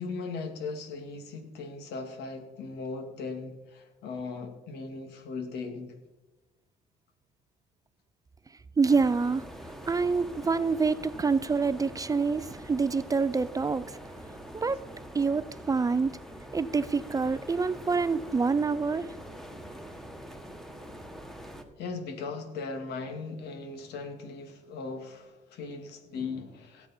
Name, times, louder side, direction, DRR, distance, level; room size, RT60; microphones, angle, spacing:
voice 1, 0.0-6.0 21.8-26.9, left 4 dB, 80° left, 6 dB, 2.2 m, -38 dB
voice 2, 8.8-9.4 9.9-13.8 14.5-14.8 15.1-16.2 16.5-19.1, right 4 dB, 20° right, 15 dB, 0.5 m, -26 dB
sound 1, 8.9-21.6, equal, ahead, 1.5 m, -44 dB
17.5 x 8.2 x 4.3 m, 1.1 s
cardioid pair, 110°, 17 cm